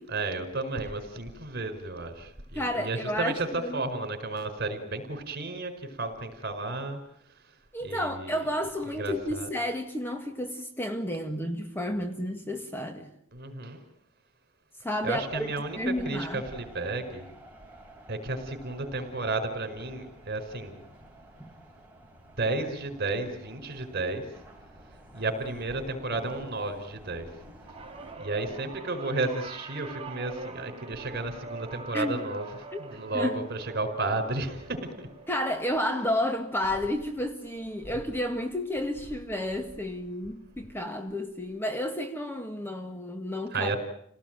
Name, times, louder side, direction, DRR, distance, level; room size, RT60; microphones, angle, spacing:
voice 1, 0.1-7.0 7.3-7.5 7.8-8.5 8.9-9.5 13.3-13.8 15.0-17.3 18.1-20.8 22.4-24.3 25.1-27.3 28.1-35.1 43.5-43.8, right 2 dB, 45° right, 4.9 m, -33 dB
voice 2, 2.6-3.3 3.6-3.8 7.7-13.1 14.8-15.5 15.8-16.4 21.4-21.5 31.9-32.2 32.7-32.8 33.1-33.3 35.3-43.7, left 1 dB, 10° left, 1.8 m, -31 dB
sound 1, 14.9-28.2, right 1 dB, 10° right, 5.0 m, -51 dB
sound 2, 27.7-38.1 38.4-38.9 40.0-40.1, right 4 dB, 25° right, 3.6 m, -45 dB
29.5 x 18.5 x 9.1 m
head